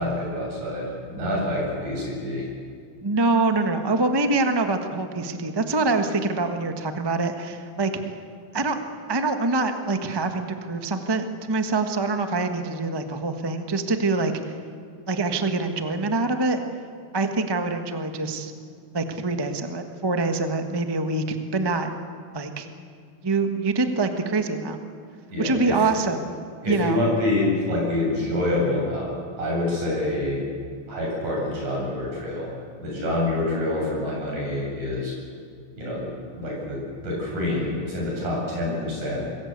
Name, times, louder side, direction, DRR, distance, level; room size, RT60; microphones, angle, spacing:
voice 1, 0.0-2.5 25.3-26.1 26.6-29.1 29.4-30.4 30.9-32.5 32.8-35.1 35.7-39.3, left 1 dB, 85° right, -3 dB, 9.3 m, -27 dB
voice 2, 3.0-8.2 8.5-8.8 9.1-14.5 15.1-16.6 17.1-18.5 18.9-21.9 22.3-22.7 23.2-24.8 25.4-26.3 26.7-27.0, right 3 dB, 25° right, 6 dB, 0.5 m, -25 dB
26.0 x 21.0 x 8.1 m, 2.2 s
omnidirectional pair, 3.3 m